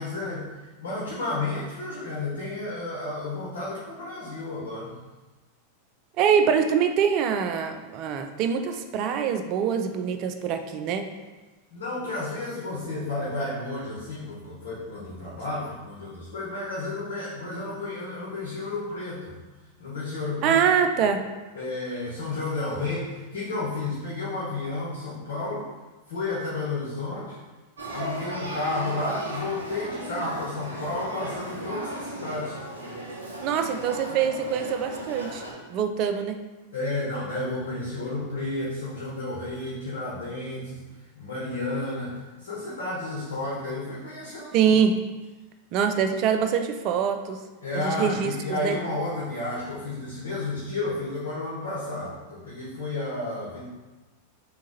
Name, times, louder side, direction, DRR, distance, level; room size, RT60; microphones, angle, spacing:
voice 1, 0.0-5.0 11.7-19.3 19.8-20.6 21.5-25.7 26.1-27.4 27.9-32.6 36.7-44.8 47.6-53.7, left 2 dB, 70° left, -6 dB, 1.0 m, -32 dB
voice 2, 6.2-11.1 20.4-21.2 33.4-35.4 35.7-36.4 44.5-44.9 45.7-47.4 47.8-48.8, right 7 dB, 45° right, 7 dB, 0.4 m, -24 dB
Male speech man speaking / Child speech kid speaking / Conversation, 27.8-35.5, right 1 dB, 85° right, 0.8 m, -36 dB
3.6 x 2.9 x 3.9 m, 1.2 s
figure-of-eight pair, 90°, 0 cm